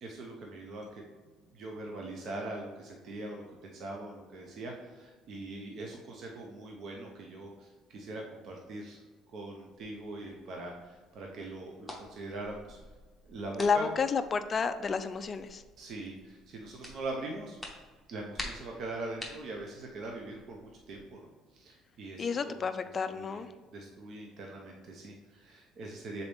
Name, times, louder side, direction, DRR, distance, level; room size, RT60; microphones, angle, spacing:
voice 1, 0.0-1.0 1.5-9.0 9.3-12.8 13.2-13.9 15.8-17.6 18.1-23.4 23.7-26.2, right 2 dB, 45° right, 0 dB, 0.7 m, -42 dB
sound 1, 9.7-21.0, left 1 dB, 5° right, 0.9 m, -49 dB
voice 2, 13.6-15.6 22.2-23.5, left 5 dB, 25° left, 10 dB, 0.3 m, -30 dB
7.0 x 4.0 x 3.4 m, 1.3 s
cardioid pair, 150°, 0 cm